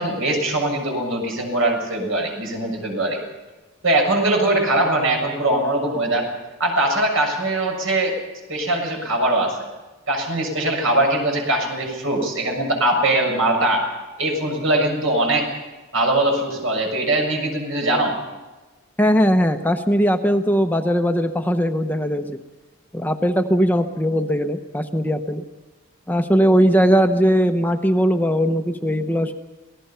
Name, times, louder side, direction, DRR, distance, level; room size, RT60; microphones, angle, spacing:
voice 1, 0.0-3.2 3.8-6.3 6.6-8.2 8.5-9.6 10.1-13.9 14.2-15.5 15.9-18.2, right 1 dB, 70° right, 2 dB, 6.9 m, -21 dB
voice 2, 19.0-22.4 22.9-25.4 26.1-29.3, equal, 10° left, 6 dB, 0.8 m, -19 dB
26.5 x 19.0 x 5.7 m, 1.2 s
head